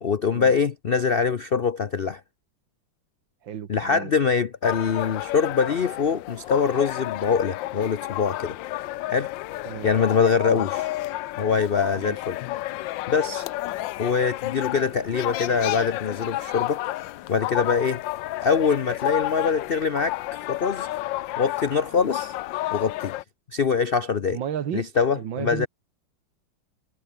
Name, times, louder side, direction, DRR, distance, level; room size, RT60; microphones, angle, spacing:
voice 1, 0.0-2.2 3.7-8.6 9.1-9.3 9.8-10.9 11.4-12.4 13.1-13.5 14.0-16.8 17.3-18.0 18.4-20.2 20.5-20.9 21.4-22.3 22.7-23.1 23.5-24.4 24.7-25.7, left 5 dB, 60° left, 0.6 m, -23 dB
voice 2, 3.4-4.1 9.6-9.9 10.4-10.7 12.0-12.1 24.3-24.9 25.1-25.7, right 9 dB, 75° right, 2.1 m, -33 dB
sound 1, 4.6-23.2, left 16 dB, 75° left, 1.3 m, -31 dB
omnidirectional pair, 2.1 m